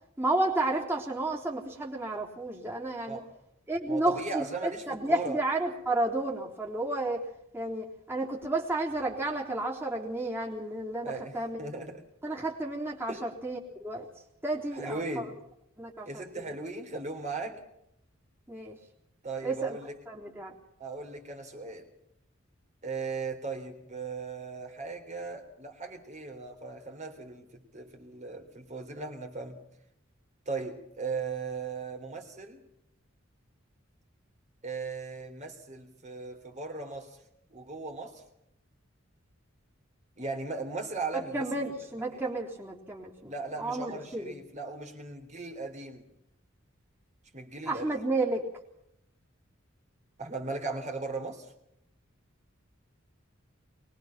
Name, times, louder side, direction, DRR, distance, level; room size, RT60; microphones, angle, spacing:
voice 1, 0.2-3.2 3.7-7.2 7.5-11.6 12.2-14.1 14.4-15.3 15.8-16.1 16.4-16.5 18.5-18.8 19.4-19.8 20.1-20.5 41.1-43.3 43.6-44.3 47.7-48.5, right 2 dB, 10° right, -3 dB, 3.6 m, -31 dB
voice 2, 3.8-5.4 11.0-12.0 13.1-13.3 14.7-15.4 16.1-17.6 19.2-20.0 20.8-21.9 22.8-29.6 30.5-32.6 34.6-37.2 37.5-38.2 40.2-41.6 42.1-42.3 43.2-46.1 47.3-48.0 50.2-51.5, right 3 dB, 35° right, 3 dB, 3.6 m, -38 dB
23.5 x 21.0 x 5.9 m, 0.78 s
head